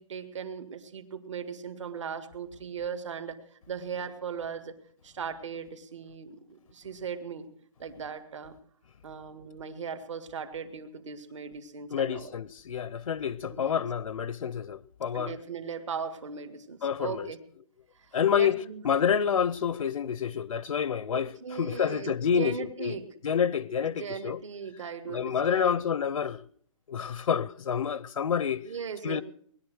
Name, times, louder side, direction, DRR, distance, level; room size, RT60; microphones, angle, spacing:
voice 1, 0.0-4.8 5.0-7.5 7.8-8.6 9.0-12.3 13.5-13.9 15.1-17.4 17.9-18.8 21.1-23.1 23.8-25.8 28.6-29.2, right 6 dB, 60° right, 2.0 m, -38 dB
voice 2, 11.9-15.3 16.8-17.3 18.1-22.9 23.2-24.4 25.1-26.4 26.9-28.6 29.0-29.2, left 7 dB, 75° left, 0.6 m, -28 dB
20.0 x 11.5 x 6.3 m
hypercardioid pair, 175°, 18 cm